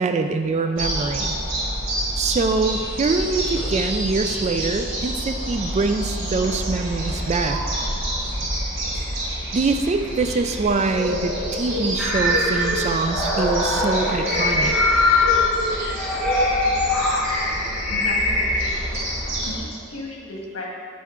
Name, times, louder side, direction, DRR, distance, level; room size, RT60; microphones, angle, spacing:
voice 1, 0.0-1.4 2.2-7.6 8.9-9.2 9.5-14.8, right 3 dB, 35° right, 7 dB, 0.3 m, -24 dB
sound 1, 0.8-19.6, equal, 70° right, 1.4 m, -28 dB
sound 2, 3.6-4.0 4.3-4.8 5.5-6.0 6.3-6.9 7.7-8.1 8.9-9.2 10.0-10.4, left 1 dB, 45° left, 1.5 m, -42 dB
sound 3, 12.0-18.7, left 2 dB, ahead, 1.2 m, -22 dB
voice 2, 17.9-18.8 19.4-20.7, left 1 dB, 75° left, -3 dB, 1.4 m, -35 dB
8.2 x 4.4 x 3.6 m, 2.5 s
head